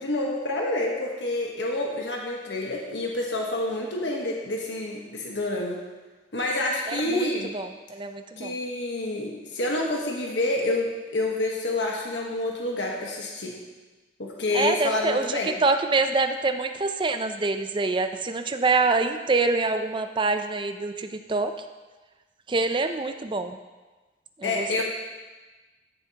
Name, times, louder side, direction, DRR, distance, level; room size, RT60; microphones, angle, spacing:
voice 1, 0.0-5.8 6.3-7.5 8.4-13.6 14.2-15.5 24.4-24.8, left 2 dB, 80° left, -1 dB, 1.3 m, -28 dB
voice 2, 6.9-7.3 7.5-8.5 14.5-21.5 22.5-23.6 24.4-24.8, right 3 dB, 25° right, 8 dB, 0.5 m, -26 dB
14.5 x 7.0 x 2.9 m, 1.2 s
head